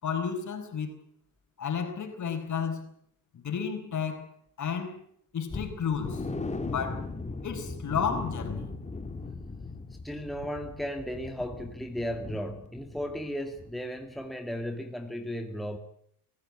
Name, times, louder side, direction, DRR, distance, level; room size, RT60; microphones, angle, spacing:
voice 1, 0.0-0.9 1.6-2.9 3.3-5.0 5.3-6.3 6.6-7.1 7.4-8.8, left 6 dB, 45° left, 5.2 m, -32 dB
sound 1, 5.5-13.3 13.5-13.7 14.1-14.2, left 3 dB, 15° left, 2.4 m, -38 dB
voice 2, 10.0-15.8, equal, ahead, 2.5 m, -35 dB
23.5 x 15.5 x 9.8 m
cardioid pair, 100°, 41 cm